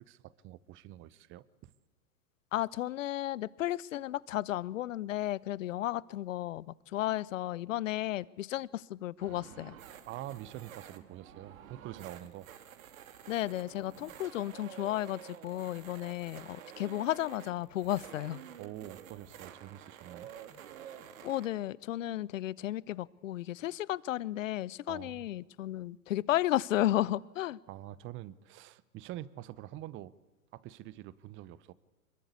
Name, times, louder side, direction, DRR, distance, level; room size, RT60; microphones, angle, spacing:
voice 1, 0.0-1.7 10.1-12.5 18.6-20.3 24.9-25.2 27.7-30.1 30.5-31.7, right 14 dB, 25° right, 19 dB, 1.0 m, -46 dB
voice 2, 2.5-9.7 13.3-18.4 21.2-27.6, left 14 dB, 60° left, 22 dB, 0.9 m, -33 dB
sound 1, 9.2-21.5, right 9 dB, 60° right, 2.5 m, -50 dB
25.0 x 22.0 x 8.3 m, 1.2 s
figure-of-eight pair, 110°, 45 cm